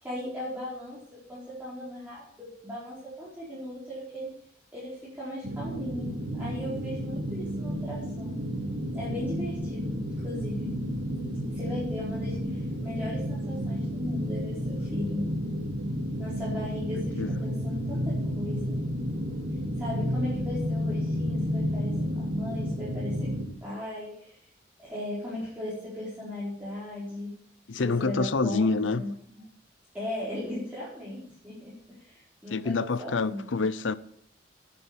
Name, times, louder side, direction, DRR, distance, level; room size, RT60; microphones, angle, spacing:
voice 1, 0.0-4.3 4.7-6.1 6.3-8.4 8.9-10.7 11.5-15.3 16.2-18.8 19.8-24.4 24.8-27.3 27.7-29.1 29.9-33.6, left 1 dB, 10° right, 4.8 m, -37 dB
sound 1, 5.4-23.5, equal, 70° right, 3.0 m, -31 dB
voice 2, 17.2-17.5 27.7-29.0 32.5-34.0, left 4 dB, 80° left, 0.7 m, -27 dB
10.0 x 10.0 x 7.3 m
head